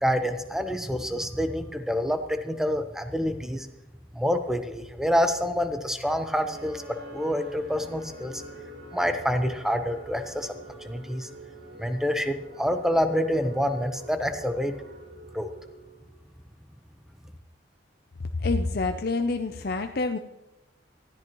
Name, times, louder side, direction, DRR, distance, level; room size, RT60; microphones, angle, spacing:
voice 1, 0.0-3.7 4.1-8.4 8.9-10.5 10.8-11.3 11.8-14.7 15.3-15.5, equal, 5° right, 7 dB, 0.9 m, -27 dB
sound 1, 6.0-16.2, right 1 dB, 75° right, 5.8 m, -45 dB
voice 2, 18.4-20.2, left 3 dB, 55° left, 6 dB, 0.6 m, -27 dB
19.0 x 13.5 x 3.1 m, 0.95 s
head